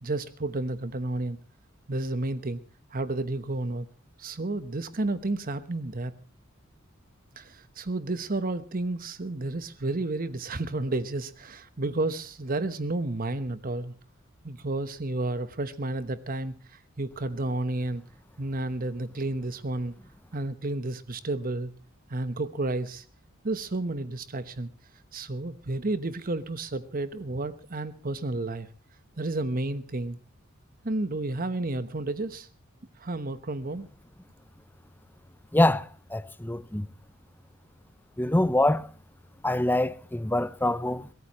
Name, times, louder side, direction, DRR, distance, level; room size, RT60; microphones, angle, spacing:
voice 1, 0.0-1.4 1.9-2.6 2.9-3.9 4.2-6.1 7.4-13.9 14.4-18.0 18.4-19.9 20.3-21.7 22.1-23.0 23.4-24.7 25.1-28.7 29.2-30.2 30.8-32.5 33.0-33.9, right 2 dB, 45° right, 1.1 m, -31 dB
voice 2, 35.5-35.9 36.1-36.9 38.2-38.9 39.4-41.1, left 1 dB, 10° left, 0.7 m, -24 dB
23.0 x 17.5 x 3.1 m
head